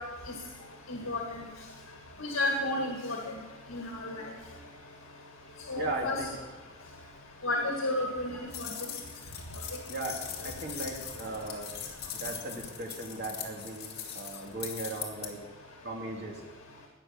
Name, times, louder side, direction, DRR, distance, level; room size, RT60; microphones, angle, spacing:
voice 1, 0.9-1.5 2.2-3.3 3.7-4.3 5.7-6.1 7.4-8.7, left 2 dB, 80° left, 1 dB, 1.9 m, -32 dB
voice 2, 5.7-6.4 9.9-11.7 12.1-15.4 15.8-16.4, right 2 dB, 55° right, 0 dB, 2.5 m, -37 dB
sound 1, 8.5-15.3, left 8 dB, 50° left, 2.3 m, -41 dB
19.0 x 6.7 x 7.4 m, 1.3 s
head